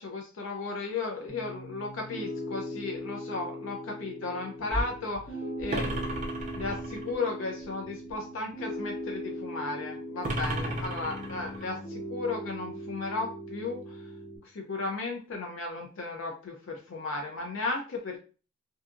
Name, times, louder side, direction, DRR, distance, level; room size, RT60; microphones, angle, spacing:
voice 1, 0.0-5.9 6.5-14.1 14.4-18.2, left 3 dB, 70° left, 1 dB, 0.4 m, -35 dB
Piano, 1.3-14.4, equal, 50° left, 1.4 m, -39 dB
sound 1, 4.7-5.3 5.6-6.2 6.5-6.7 7.0-7.2 7.5-8.2 8.5-9.5, equal, 30° left, 1.2 m, -40 dB
sound 2, 5.7-7.2 10.2-11.7, right 1 dB, 35° right, 0.3 m, -34 dB
2.7 x 2.3 x 2.4 m, 0.37 s
head